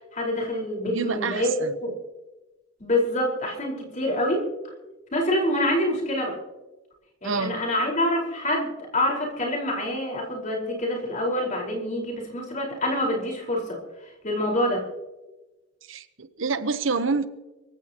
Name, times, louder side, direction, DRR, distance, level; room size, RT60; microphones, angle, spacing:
voice 1, 0.1-2.0 2.8-4.5 5.1-6.4 7.2-13.8 14.2-14.8, left 1 dB, 35° left, -1 dB, 4.8 m, -26 dB
voice 2, 0.8-1.8 7.2-7.6 15.9-17.3, right 4 dB, 70° right, 11 dB, 1.0 m, -28 dB
24.5 x 15.0 x 3.0 m, 1.1 s
head